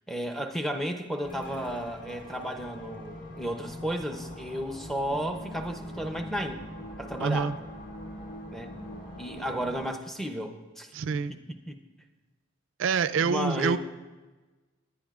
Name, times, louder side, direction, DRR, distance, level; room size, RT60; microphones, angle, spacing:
voice 1, 0.1-6.6 7.0-7.5 8.5-8.7 9.2-11.8 12.9-13.8, equal, ahead, 5 dB, 0.6 m, -33 dB
sound 1, 1.2-9.9, left 1 dB, 40° left, 1.8 m, -42 dB
voice 2, 7.2-7.6 10.9-11.4 12.8-13.8, right 5 dB, 65° right, 14 dB, 0.3 m, -26 dB
19.0 x 11.0 x 2.4 m, 1.3 s
head